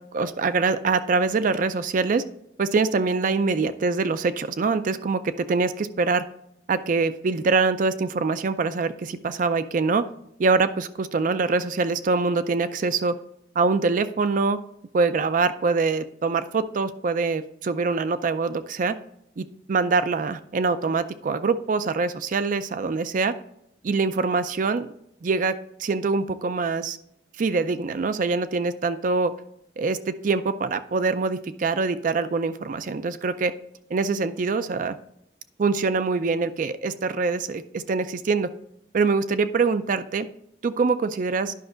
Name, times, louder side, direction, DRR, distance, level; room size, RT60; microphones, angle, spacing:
voice 1, 0.0-2.2 2.6-6.2 6.7-10.0 10.4-13.2 13.6-14.6 14.9-18.9 19.4-23.3 23.8-24.9 25.2-27.0 27.4-29.3 29.8-33.5 33.9-35.0 35.6-38.5 38.9-40.3 40.6-41.5, right 4 dB, 50° right, 12 dB, 0.4 m, -24 dB
10.0 x 5.9 x 3.8 m, 0.78 s
head